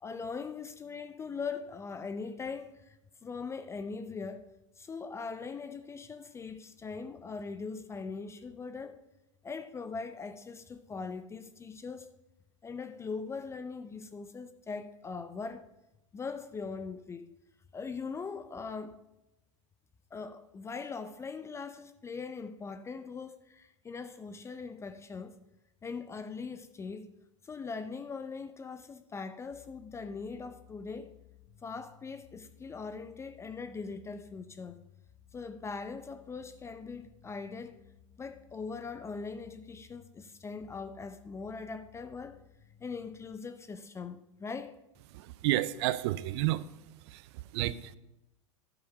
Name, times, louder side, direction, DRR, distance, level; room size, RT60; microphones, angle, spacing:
voice 1, 0.0-4.5 4.8-9.0 9.4-12.2 12.6-15.7 16.1-17.3 17.7-19.0 20.1-25.4 25.8-27.1 27.4-31.1 31.6-34.8 35.3-37.8 38.2-42.4 42.8-44.8, left 4 dB, 15° left, 0.5 m, -41 dB
sound 1, 29.5-43.4, left 10 dB, 45° left, 0.8 m, -60 dB
voice 2, 45.1-46.7 47.0-48.0, right 16 dB, 55° right, 0.5 m, -31 dB
11.5 x 4.8 x 5.5 m
hypercardioid pair, 105°, 17 cm